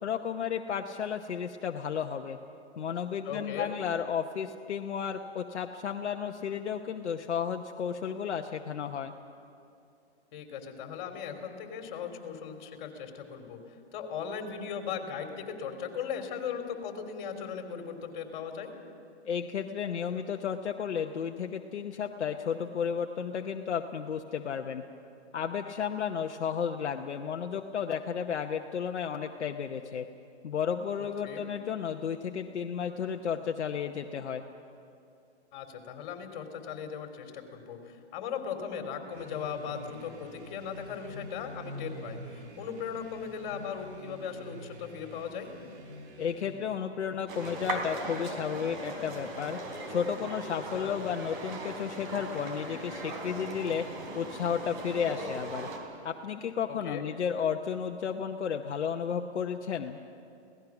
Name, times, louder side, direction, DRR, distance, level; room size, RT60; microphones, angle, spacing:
voice 1, 0.0-2.4 2.8-9.1 19.2-24.8 25.3-30.1 30.4-34.4 46.2-49.6 49.9-53.9 54.1-55.7 56.0-60.0, left 7 dB, 75° left, 4 dB, 1.0 m, -33 dB
voice 2, 3.2-3.7 10.3-18.7 31.2-31.4 35.5-45.5 50.7-51.0 56.7-57.0, left 7 dB, 40° left, 4 dB, 3.0 m, -38 dB
sound 1, 39.1-46.9, equal, 75° right, 2.8 m, -46 dB
sound 2, 47.3-55.8, right 2 dB, 45° right, 3.9 m, -39 dB
26.5 x 17.5 x 6.0 m, 2.6 s
hypercardioid pair, 145°, 34 cm